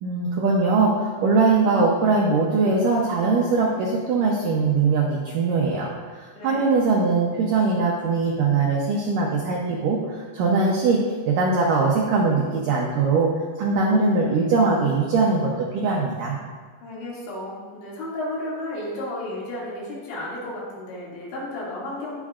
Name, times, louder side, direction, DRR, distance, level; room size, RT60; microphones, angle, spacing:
voice 1, 0.0-5.9 6.2-11.0 11.3-13.3 13.6-16.4, right 4 dB, 80° right, -2 dB, 1.9 m, -21 dB
voice 2, 6.4-6.7 16.8-22.2, left 1 dB, 85° left, -6 dB, 4.8 m, -33 dB
18.0 x 6.4 x 2.5 m, 1.5 s
omnidirectional pair, 5.0 m